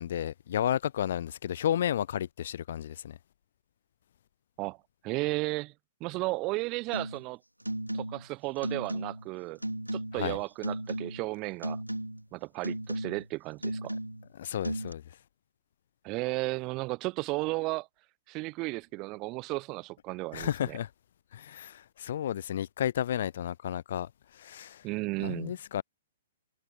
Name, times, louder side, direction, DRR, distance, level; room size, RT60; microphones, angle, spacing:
voice 1, 0.0-3.2 10.1-10.4 14.4-15.0 20.3-20.9 21.3-24.8 25.2-25.8, left 10 dB, 55° left, 0.6 m, -32 dB
voice 2, 5.0-5.7 6.0-7.4 7.9-9.6 9.9-11.8 12.3-14.0 16.0-17.9 18.3-20.8 24.8-25.5, right 23 dB, 30° right, 0.9 m, -34 dB
sound 1, 6.9-7.3 7.6-8.3 8.6-9.3 9.6-10.3 10.6-11.3 11.6-12.3 12.6-13.3 13.6-14.3 14.6-14.9, right 1 dB, 90° right, 3.6 m, -35 dB
figure-of-eight pair, 115°, 0 cm